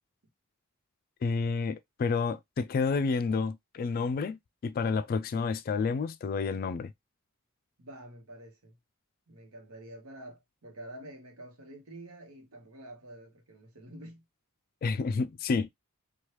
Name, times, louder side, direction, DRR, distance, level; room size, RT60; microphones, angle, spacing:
voice 1, 1.2-6.9 14.8-15.7, left 4 dB, 45° left, 0.3 m, -30 dB
voice 2, 7.8-8.7 9.3-14.2, right 1 dB, 80° right, 1.0 m, -48 dB
3.1 x 2.3 x 2.9 m
head